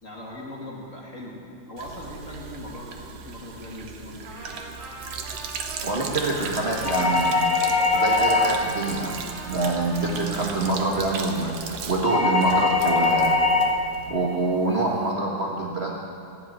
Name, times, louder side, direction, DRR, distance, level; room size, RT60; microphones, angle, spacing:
voice 1, 0.0-4.6, left 1 dB, 30° left, -4 dB, 2.2 m, -40 dB
Sink (filling or washing), 1.8-14.1, right 6 dB, 65° right, 1.9 m, -37 dB
Trumpet, 4.2-11.6, right 1 dB, 80° right, 4.7 m, -40 dB
voice 2, 5.8-7.4 7.9-9.2 9.5-13.4 14.1-15.9, right 2 dB, 45° right, -3 dB, 0.8 m, -25 dB
sound 1, 6.8-8.8 12.0-13.8, left 3 dB, 50° left, 0.4 m, -21 dB
15.5 x 7.9 x 9.7 m, 2.7 s
omnidirectional pair, 3.5 m